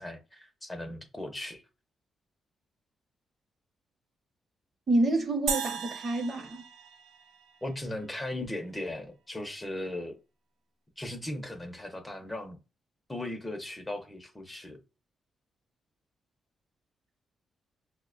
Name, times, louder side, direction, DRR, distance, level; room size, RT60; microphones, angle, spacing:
voice 1, 0.0-1.6 7.6-10.2 11.0-12.6 13.1-14.8, left 1 dB, 15° left, 0.6 m, -37 dB
voice 2, 4.9-6.6, right 2 dB, 40° right, 0.8 m, -28 dB
sound 1, 5.5-7.9, right 6 dB, 75° right, 0.4 m, -36 dB
5.3 x 2.1 x 2.4 m
cardioid pair, 105°, 0 cm